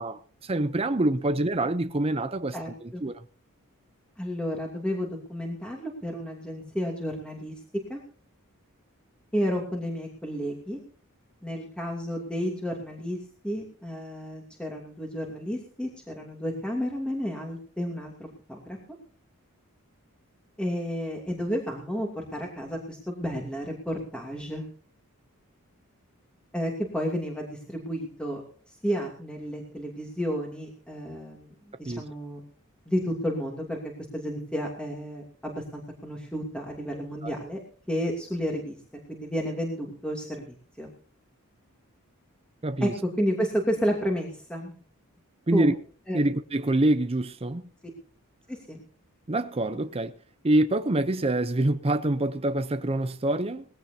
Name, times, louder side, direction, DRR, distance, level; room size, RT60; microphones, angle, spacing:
voice 1, 0.0-2.6 2.8-3.1 31.9-32.0 37.2-37.3 42.6-42.9 45.5-45.7 46.1-47.6 49.3-50.1 50.4-53.6, right 1 dB, 25° right, 0.7 m, -26 dB
voice 2, 2.5-3.0 4.2-7.5 7.9-8.0 9.3-10.8 11.4-13.2 13.4-18.8 20.6-24.6 26.5-28.4 28.8-32.4 32.9-37.6 37.9-38.8 39.1-40.9 42.8-44.7 45.5-45.7 46.1-46.2 48.5-48.8, equal, 5° left, 2.8 m, -31 dB
20.0 x 16.0 x 2.8 m
head